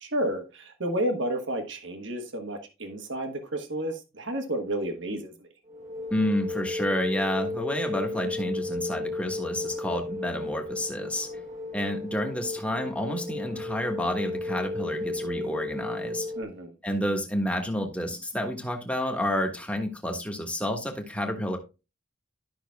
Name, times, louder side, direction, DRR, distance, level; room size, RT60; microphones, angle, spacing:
voice 1, 0.0-5.5 16.3-16.7, right 1 dB, 65° right, 1.4 m, -31 dB
sound 1, 5.7-16.4, left 2 dB, 40° right, 1.2 m, -34 dB
voice 2, 6.1-11.3 11.7-16.3 16.8-21.6, equal, 5° left, 1.3 m, -30 dB
12.5 x 5.9 x 2.3 m
head